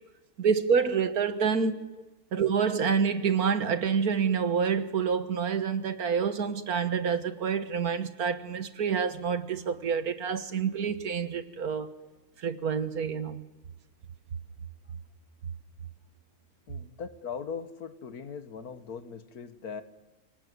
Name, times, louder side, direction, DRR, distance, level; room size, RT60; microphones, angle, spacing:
voice 1, 0.4-1.8 2.3-11.9 12.4-13.4, right 6 dB, 80° right, 1.9 m, -27 dB
voice 2, 16.7-19.8, left 6 dB, 80° left, 1.9 m, -40 dB
29.0 x 19.0 x 9.5 m
omnidirectional pair, 1.6 m